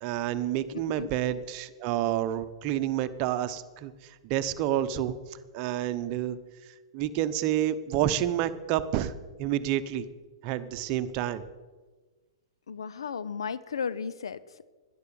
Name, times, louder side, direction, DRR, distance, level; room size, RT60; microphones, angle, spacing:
voice 1, 0.0-3.9 4.2-5.1 5.5-6.4 6.9-9.1 9.4-10.1 10.4-11.4, right 12 dB, 40° right, 11 dB, 0.9 m, -29 dB
voice 2, 0.7-1.1 12.7-14.4, left 6 dB, 80° left, 15 dB, 0.6 m, -34 dB
11.5 x 10.5 x 7.0 m, 1.3 s
hypercardioid pair, 115°, 3 cm